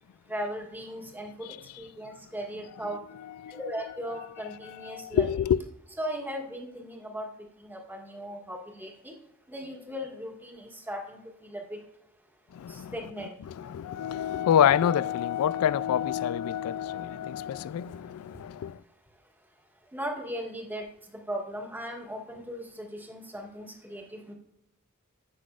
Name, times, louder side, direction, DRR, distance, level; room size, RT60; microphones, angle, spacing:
voice 1, 0.3-3.0 3.5-5.3 6.0-7.3 7.6-9.1 9.5-11.8 12.9-13.3 19.9-20.9 21.3-24.3, equal, 10° right, 1.6 m, -37 dB
voice 2, 4.9-5.6 12.5-12.9 13.5-18.8, left 9 dB, 90° left, 0.3 m, -27 dB
15.5 x 6.1 x 2.4 m
head